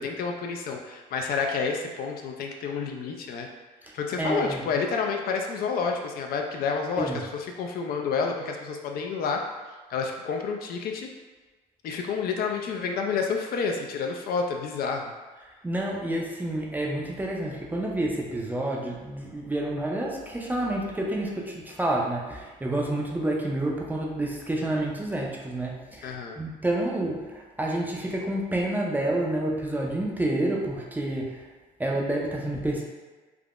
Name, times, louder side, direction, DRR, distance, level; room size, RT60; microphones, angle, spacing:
voice 1, 0.0-3.5 3.9-9.4 9.9-11.1 11.8-15.1 26.0-26.4, left 5 dB, 60° left, 3 dB, 0.4 m, -29 dB
voice 2, 3.8-4.6 7.0-7.2 15.6-31.5 31.8-32.8, right 1 dB, 10° right, -2 dB, 0.4 m, -29 dB
3.5 x 2.0 x 2.4 m, 1.3 s
cardioid pair, 110°, 17 cm